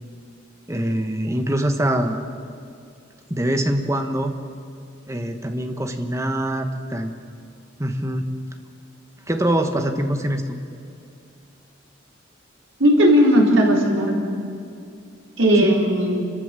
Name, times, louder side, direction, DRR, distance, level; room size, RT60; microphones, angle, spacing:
voice 1, 0.7-2.2 3.3-4.3 5.1-7.1 7.8-8.2 9.3-10.6 15.6-15.7, right 1 dB, 15° right, 6 dB, 1.3 m, -24 dB
voice 2, 12.8-14.2 15.4-16.3, equal, 80° right, -1 dB, 4.0 m, -16 dB
29.0 x 13.5 x 7.6 m, 2.5 s
head